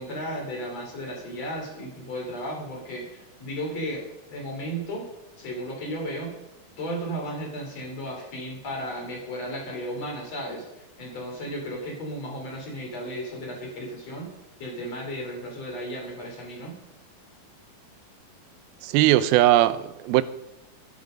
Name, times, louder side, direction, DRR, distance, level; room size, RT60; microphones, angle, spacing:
voice 1, 0.0-4.0 4.3-5.1 5.4-6.3 6.8-14.3 14.6-16.8, equal, 45° left, 4.4 m, -34 dB
voice 2, 18.8-20.2, right 14 dB, 85° right, 2.5 m, -19 dB
14.5 x 10.5 x 5.3 m
omnidirectional pair, 4.3 m